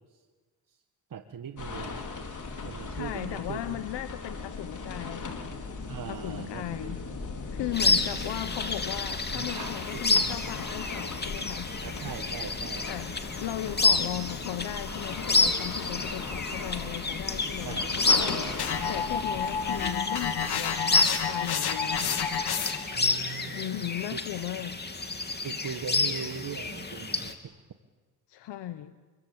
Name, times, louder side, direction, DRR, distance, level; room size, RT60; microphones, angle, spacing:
voice 1, 1.1-2.0 2.6-3.8 5.9-6.9 7.7-8.1 9.3-10.4 11.8-12.9 17.6-18.2 22.9-23.9 25.4-27.5, right 7 dB, 50° right, 7 dB, 1.6 m, -40 dB
sound 1, 1.6-19.8, left 4 dB, 45° left, 4.9 m, -38 dB
voice 2, 2.9-5.4 6.1-7.0 7.5-11.7 12.9-22.2 23.5-24.8 28.3-28.9, left 13 dB, 90° left, 9 dB, 1.2 m, -37 dB
sound 2, 7.7-27.3, left 3 dB, 25° left, 2.8 m, -30 dB
sound 3, 18.6-23.0, left 7 dB, 65° left, 2.9 m, -30 dB
28.5 x 23.0 x 8.9 m, 1.4 s
cardioid pair, 85°, 41 cm